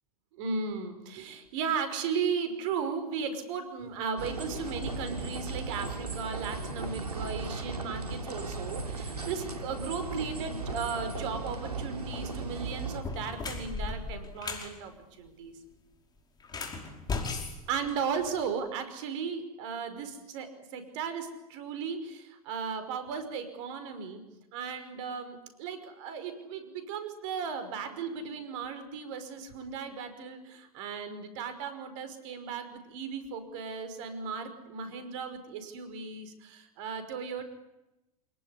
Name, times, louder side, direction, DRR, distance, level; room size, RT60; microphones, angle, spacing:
voice 1, 0.3-15.6 17.7-24.2 24.5-37.4, right 6 dB, 55° right, 10 dB, 5.3 m, -36 dB
sound 1, 4.2-13.0, right 3 dB, 85° right, 3.1 m, -36 dB
sound 2, 12.1-12.4 12.9-14.7 16.4-18.5, left 4 dB, 20° left, 5.3 m, -36 dB
27.5 x 19.0 x 9.8 m, 0.96 s
figure-of-eight pair, 95°, 19 cm